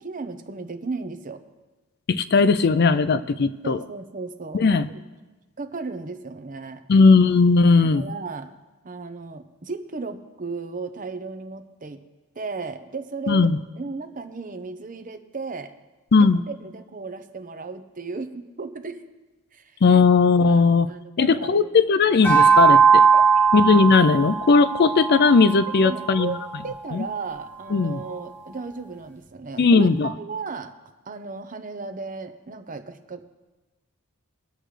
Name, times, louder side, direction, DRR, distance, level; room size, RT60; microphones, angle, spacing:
voice 1, 0.0-1.4 3.6-5.0 5.6-6.8 7.8-8.5 8.8-12.0 12.4-15.7 16.2-19.0 19.5-19.8 20.5-21.8 23.1-23.2 25.8-26.4 26.6-30.7 31.1-33.2, right 4 dB, 35° right, 8 dB, 0.8 m, -35 dB
voice 2, 2.1-3.8 4.5-4.9 6.9-8.0 13.3-13.6 16.1-16.4 19.8-20.9 21.2-23.0 23.5-26.3 26.9-27.1 27.7-28.0 29.6-30.1, left 4 dB, 45° left, 14 dB, 0.4 m, -17 dB
sound 1, 22.2-26.8, right 6 dB, 10° left, 1.8 m, -19 dB
22.0 x 7.6 x 3.3 m, 1.2 s
head